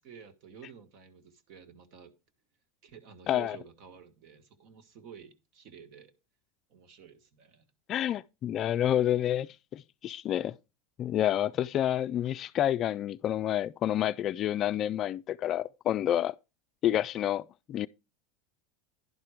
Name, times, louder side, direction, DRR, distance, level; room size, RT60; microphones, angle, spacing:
voice 1, 0.0-2.1 2.8-6.1 6.7-7.7, right 7 dB, 60° right, 1.5 m, -51 dB
voice 2, 3.3-3.6 7.9-10.6 11.0-16.3 16.8-17.9, left 11 dB, 40° left, 0.3 m, -29 dB
11.0 x 4.4 x 4.8 m
supercardioid pair, 110°, 0 cm